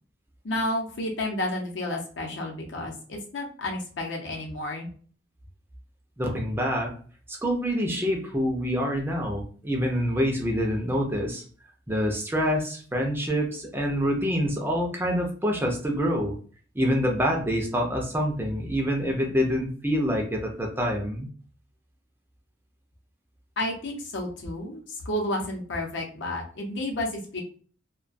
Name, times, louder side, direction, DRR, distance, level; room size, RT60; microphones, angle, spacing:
voice 1, 0.4-4.9 23.6-27.4, left 1 dB, 65° left, 1 dB, 0.7 m, -31 dB
voice 2, 6.2-6.9 7.3-11.4 11.9-16.4 16.7-21.3, equal, 10° right, 0 dB, 0.4 m, -26 dB
2.3 x 2.2 x 2.5 m, 0.43 s
head